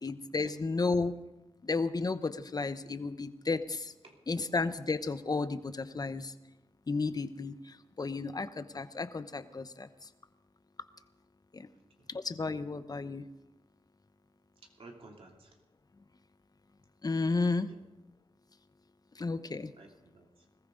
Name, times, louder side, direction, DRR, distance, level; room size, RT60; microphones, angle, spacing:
voice 1, 0.0-1.1 1.6-3.9 4.3-6.3 6.9-10.1 11.5-11.7 12.1-13.2 17.0-17.7 19.2-19.7, left 3 dB, 40° left, 12 dB, 0.9 m, -33 dB
voice 2, 4.0-4.5 11.7-12.1 14.6-15.6 17.6-17.8 19.8-20.4, right 3 dB, 70° right, 0 dB, 3.0 m, -55 dB
20.5 x 14.5 x 3.9 m, 1.0 s
cardioid pair, 55°, 10 cm